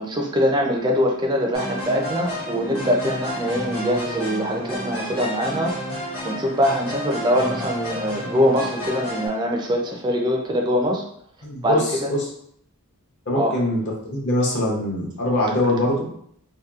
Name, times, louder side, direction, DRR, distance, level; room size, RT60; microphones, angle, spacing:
voice 1, 0.0-5.8 6.2-11.0 11.6-12.1 13.3-13.5, equal, 20° right, 1 dB, 0.3 m, -23 dB
sound 1, 1.5-9.3, equal, 65° left, 1.0 m, -31 dB
voice 2, 11.4-12.3 13.3-16.1, left 1 dB, 50° left, -2 dB, 0.7 m, -23 dB
2.8 x 2.2 x 2.3 m, 0.67 s
head